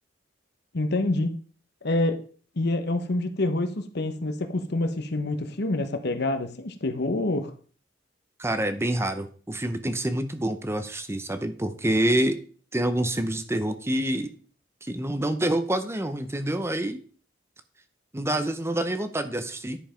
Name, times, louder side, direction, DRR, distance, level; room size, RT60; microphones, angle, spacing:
voice 1, 0.7-1.3 1.8-2.2 2.6-7.5, left 2 dB, 60° left, 8 dB, 1.1 m, -27 dB
voice 2, 8.4-12.4 12.7-14.3 14.8-17.0 18.1-19.8, right 1 dB, 15° right, 10 dB, 0.7 m, -27 dB
10.5 x 5.2 x 5.1 m, 0.42 s
head